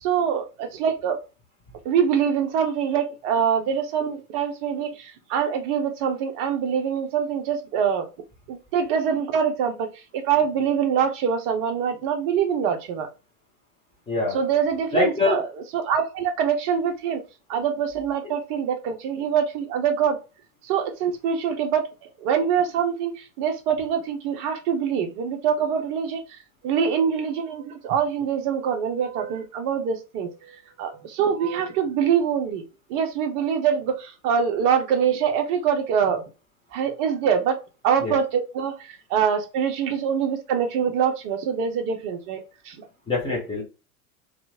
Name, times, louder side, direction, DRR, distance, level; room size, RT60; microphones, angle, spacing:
voice 1, 0.0-1.2 1.8-8.1 8.5-9.9 10.1-13.1 14.3-17.2 17.5-20.2 20.6-26.4 26.6-32.6 32.9-36.2 36.7-37.6 37.8-42.8, right 7 dB, 30° right, 5 dB, 0.6 m, -24 dB
voice 2, 14.1-14.4 14.9-15.4 38.0-38.1 43.1-43.6, left 3 dB, 10° left, -3 dB, 0.9 m, -23 dB
2.8 x 2.4 x 2.7 m, 0.30 s
figure-of-eight pair, 95°, 44 cm